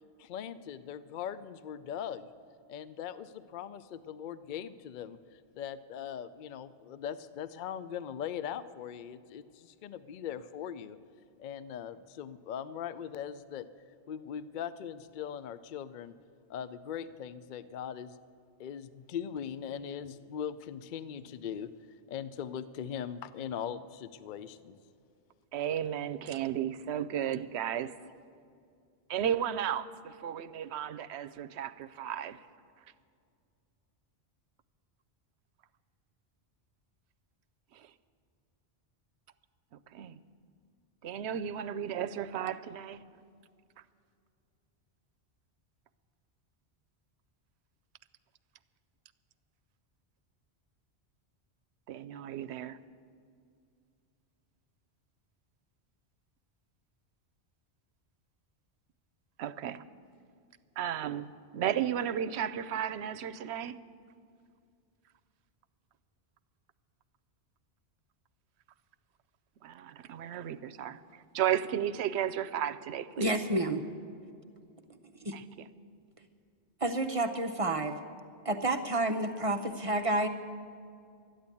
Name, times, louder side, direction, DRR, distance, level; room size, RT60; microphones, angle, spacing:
voice 1, 0.2-2.3 2.7-11.0 11.4-13.7 14.1-16.1 16.5-18.2 18.6-21.7 22.1-24.8, left 8 dB, 55° left, 0.6 m, -40 dB
voice 2, 25.5-28.1 29.1-32.4 37.7-37.9 39.9-40.2 41.0-43.0 51.9-52.8 59.4-59.8 60.8-63.8 69.6-73.4 75.3-75.7, right 10 dB, 75° right, 0.8 m, -34 dB
voice 3, 73.2-73.8 75.2-75.3 76.8-78.0 78.4-80.3, right 2 dB, 35° right, 0.6 m, -30 dB
13.0 x 10.5 x 8.4 m
omnidirectional pair, 1.1 m